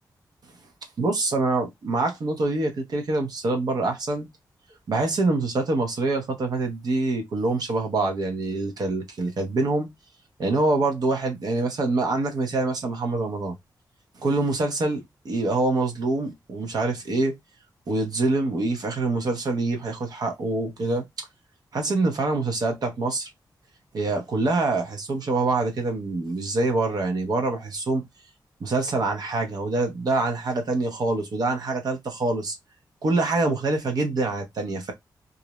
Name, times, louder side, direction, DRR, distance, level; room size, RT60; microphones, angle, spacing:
voice 1, 1.0-4.3 4.9-9.9 10.4-13.5 14.2-17.4 17.9-21.1 21.7-23.3 23.9-28.0 28.6-32.6 33.0-34.9, right 2 dB, 60° right, 0.6 m, -25 dB
2.4 x 2.0 x 2.9 m
wide cardioid pair, 95°, 8 cm